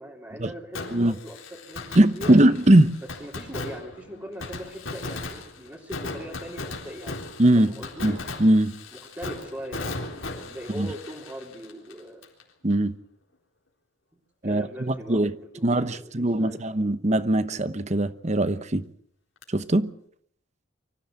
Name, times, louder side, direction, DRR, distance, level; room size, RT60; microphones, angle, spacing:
voice 1, 0.0-2.3 3.2-7.3 7.5-8.1 9.1-12.2 14.4-15.2 15.5-16.6, equal, 15° right, 3.3 m, -40 dB
Fireworks, 0.7-12.4 12.7-12.8 19.4-19.5, left 2 dB, 75° left, 3.9 m, -37 dB
voice 2, 1.9-3.0 7.4-7.7 8.0-8.7 10.8-10.9 12.6-13.0 14.4-15.3 15.6-18.8 19.5-19.9, right 1 dB, 35° right, 1.0 m, -21 dB
24.5 x 14.5 x 7.9 m
head